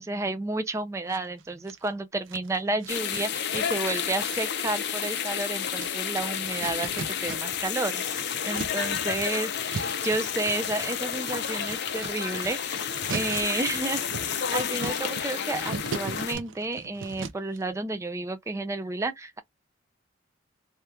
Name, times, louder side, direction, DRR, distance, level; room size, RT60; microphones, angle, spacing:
voice 1, 0.0-19.4, right 2 dB, 15° right, 0.3 m, -31 dB
sound 1, 1.1-1.9 2.3-7.8 8.0-17.6, right 4 dB, 75° right, 0.5 m, -40 dB
sound 2, 2.9-16.3, left 8 dB, 60° left, 0.5 m, -31 dB
2.8 x 2.3 x 3.1 m
head